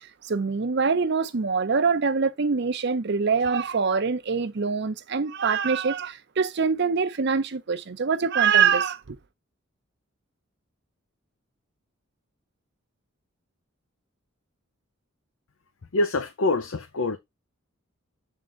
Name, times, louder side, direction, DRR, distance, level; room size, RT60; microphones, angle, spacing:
voice 1, 0.0-9.2, right 5 dB, 55° right, 0.6 m, -24 dB
voice 2, 15.9-17.2, left 2 dB, 80° left, 0.7 m, -25 dB
7.4 x 3.7 x 3.8 m
head